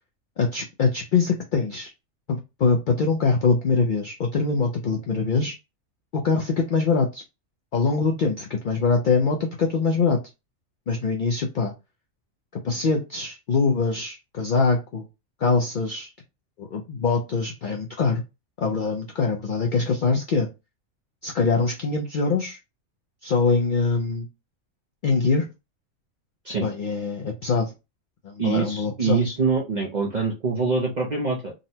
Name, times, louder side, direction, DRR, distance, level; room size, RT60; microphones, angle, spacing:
voice 1, 0.4-1.9 2.3-5.6 6.1-7.2 7.7-10.2 10.9-11.7 12.6-15.1 15.4-16.1 16.6-18.2 18.6-20.5 21.2-22.6 23.2-24.3 25.0-25.5 26.6-27.7 28.2-29.2, left 4 dB, 65° left, 1 dB, 0.5 m, -23 dB
voice 2, 28.4-31.5, right 4 dB, 50° right, -1 dB, 0.5 m, -24 dB
3.8 x 2.1 x 2.7 m, 0.26 s
omnidirectional pair, 1.4 m